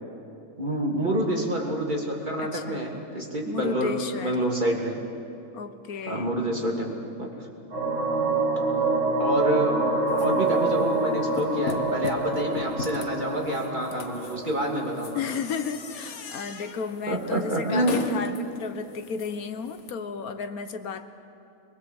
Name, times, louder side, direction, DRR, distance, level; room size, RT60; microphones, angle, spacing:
voice 1, 0.6-3.9 4.2-5.0 6.1-6.9 7.2-7.3 9.2-9.7 10.2-15.2 17.1-18.0, right 1 dB, 30° right, -1 dB, 3.1 m, -27 dB
voice 2, 2.4-2.8 3.5-4.4 5.5-6.3 15.1-21.1, left 5 dB, 90° left, 9 dB, 1.5 m, -33 dB
sound 1, 7.7-15.3, right 3 dB, 75° right, 7.5 m, -27 dB
sound 2, 10.1-19.9, left 6 dB, 55° left, 1.3 m, -39 dB
23.0 x 22.0 x 7.8 m, 2.6 s
omnidirectional pair, 1.5 m